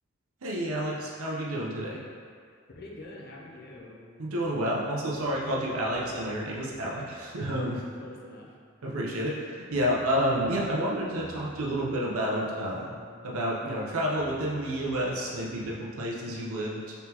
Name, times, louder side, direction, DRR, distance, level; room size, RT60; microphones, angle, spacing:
voice 1, 0.4-2.0 4.2-7.8 8.8-12.9 13.2-16.9, equal, 90° right, -4 dB, 0.7 m, -30 dB
voice 2, 2.7-4.0 7.6-8.5, left 2 dB, 50° left, -2 dB, 0.5 m, -46 dB
sound 1, 2.7-15.7, equal, 5° right, 0.4 m, -53 dB
4.0 x 3.7 x 2.9 m, 2.1 s
head